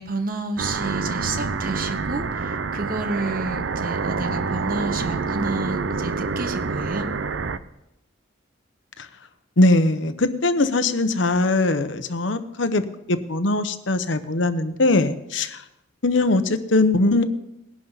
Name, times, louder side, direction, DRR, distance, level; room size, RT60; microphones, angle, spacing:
voice 1, 0.0-7.1, right 2 dB, 45° right, 8 dB, 1.2 m, -30 dB
sound 1, 0.6-7.6, right 4 dB, 70° right, 0.6 m, -27 dB
voice 2, 9.6-15.6 16.0-17.2, left 2 dB, 70° left, 10 dB, 1.0 m, -21 dB
20.0 x 11.0 x 4.1 m, 0.90 s
head